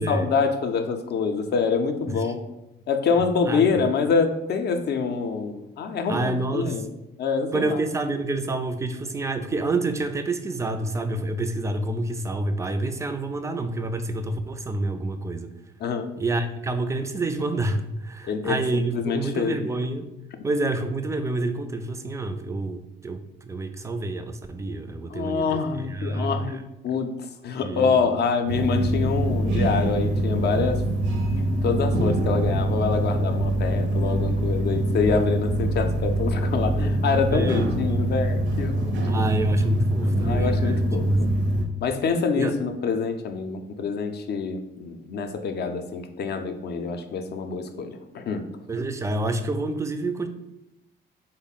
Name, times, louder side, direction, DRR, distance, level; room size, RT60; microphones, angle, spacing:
voice 1, 0.0-2.4 2.9-6.9 7.2-7.8 15.8-16.1 18.3-19.7 25.1-27.1 27.4-30.8 31.6-39.2 40.0-41.3 41.8-48.5, left 5 dB, 55° left, 6 dB, 0.4 m, -26 dB
voice 2, 6.1-6.8 7.5-15.5 16.2-20.1 20.4-23.2 23.5-26.6 27.6-28.2 37.3-37.8 39.1-41.6 42.4-42.5 48.7-50.3, right 2 dB, 15° right, 8 dB, 0.3 m, -28 dB
sound 1, 28.5-41.7, right 1 dB, 65° right, 0.6 m, -24 dB
3.5 x 2.1 x 3.8 m, 0.90 s
cardioid pair, 90°, 20 cm